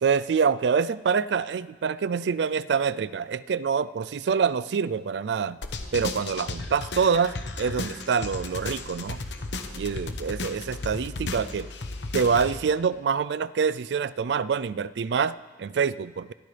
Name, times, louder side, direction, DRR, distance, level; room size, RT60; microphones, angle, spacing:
voice 1, 0.0-5.6 5.9-9.2 9.8-11.7 12.1-16.3, right 6 dB, 70° right, 17 dB, 0.4 m, -26 dB
sound 1, 5.6-12.6, left 2 dB, 80° left, 1.0 m, -34 dB
23.0 x 13.5 x 3.3 m, 1.4 s
head